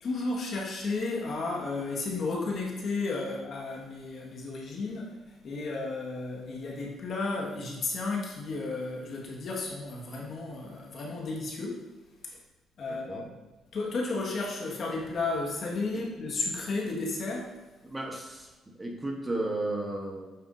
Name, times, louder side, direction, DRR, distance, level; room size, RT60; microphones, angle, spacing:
voice 1, 0.0-11.8 12.8-13.2 13.7-17.5, left 3 dB, 60° left, -2 dB, 1.8 m, -33 dB
voice 2, 12.9-13.3 15.9-16.0 17.8-20.3, right 2 dB, 20° right, 0 dB, 1.2 m, -34 dB
8.7 x 5.8 x 2.7 m, 1.2 s
cardioid pair, 90°, 0 cm